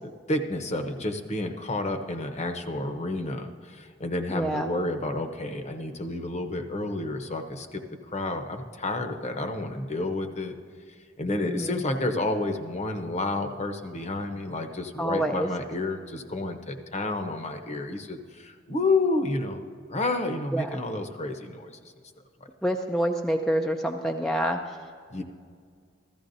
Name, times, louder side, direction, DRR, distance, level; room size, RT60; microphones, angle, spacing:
voice 1, 0.3-7.8 8.1-10.5 11.2-19.6 19.9-21.7 25.1-25.2, left 2 dB, 35° left, 6 dB, 0.8 m, -30 dB
voice 2, 4.3-4.7 11.4-11.8 15.0-15.5 20.5-20.8 22.6-24.8, right 1 dB, ahead, 2 dB, 0.4 m, -27 dB
15.0 x 14.0 x 2.6 m, 2.1 s
head